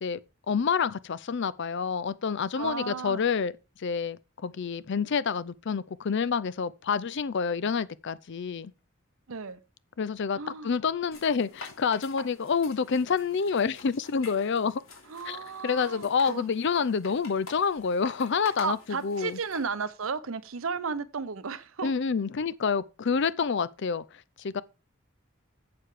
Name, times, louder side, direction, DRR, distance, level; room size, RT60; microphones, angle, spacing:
voice 1, 0.5-3.5 3.8-8.7 10.0-14.8 15.2-19.4 21.8-24.6, left 5 dB, 55° left, 0.5 m, -28 dB
voice 2, 2.6-3.2 9.3-9.6 10.4-10.7 15.1-16.5 18.6-21.9, right 5 dB, 75° right, 0.7 m, -34 dB
sound 1, 11.1-19.7, left 3 dB, 75° left, 3.2 m, -48 dB
7.7 x 6.7 x 4.9 m
head